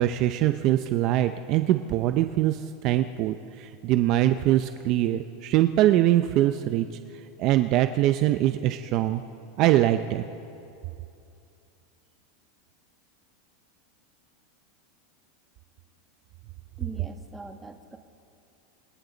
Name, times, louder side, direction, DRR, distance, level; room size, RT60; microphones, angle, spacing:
voice 1, 0.0-6.9 7.4-9.2 9.6-10.2, right 13 dB, 45° right, 9 dB, 0.7 m, -23 dB
voice 2, 16.8-18.0, right 3 dB, 10° right, 4 dB, 1.5 m, -41 dB
29.5 x 25.0 x 4.0 m, 2.6 s
supercardioid pair, 140°, 0 cm